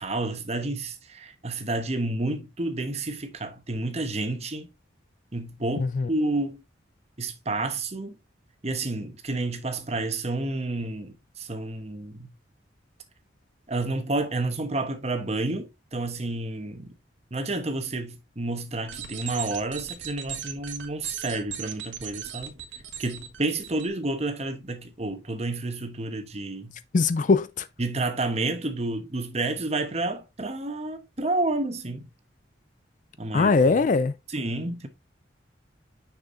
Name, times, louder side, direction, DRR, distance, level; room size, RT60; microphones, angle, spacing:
voice 1, 0.0-4.7 5.3-6.6 7.2-8.2 8.6-12.3 13.7-16.9 17.3-22.6 23.0-26.7 27.8-32.0 33.2-33.5 34.3-34.9, right 2 dB, 35° right, 1.1 m, -30 dB
voice 2, 5.8-6.1 26.9-27.7 33.3-34.2, left 4 dB, 45° left, 0.4 m, -21 dB
sound 1, 18.9-23.9, right 9 dB, 85° right, 1.5 m, -38 dB
6.5 x 6.1 x 2.6 m
head